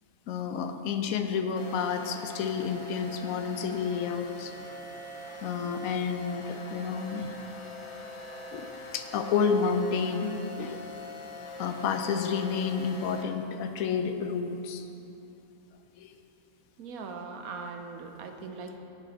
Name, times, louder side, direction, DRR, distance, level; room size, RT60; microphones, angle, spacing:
voice 1, 0.3-4.5 5.4-7.3 8.5-10.8 11.6-14.9 16.0-16.2, left 6 dB, 70° left, 7 dB, 1.0 m, -30 dB
sound 1, 1.6-13.2, left 1 dB, 35° left, 0.5 m, -43 dB
voice 2, 16.8-18.8, right 4 dB, 75° right, 5 dB, 1.2 m, -40 dB
10.5 x 8.4 x 4.1 m, 2.8 s
omnidirectional pair, 1.6 m